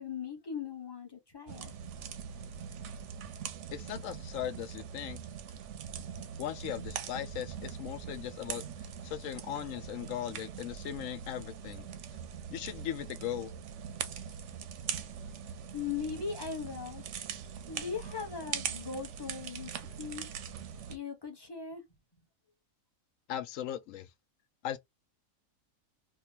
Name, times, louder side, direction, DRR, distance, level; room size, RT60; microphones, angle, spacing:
voice 1, 0.0-1.7 15.7-17.1 17.7-20.3 20.9-21.8, left 6 dB, 20° left, 0.9 m, -39 dB
sound 1, 1.5-21.0, right 8 dB, 65° right, 0.8 m, -42 dB
voice 2, 3.7-5.2 6.4-8.6 9.0-11.9 12.5-13.5 23.3-24.1 24.6-24.8, left 11 dB, 75° left, 0.9 m, -38 dB
3.7 x 2.3 x 2.7 m
omnidirectional pair, 1.4 m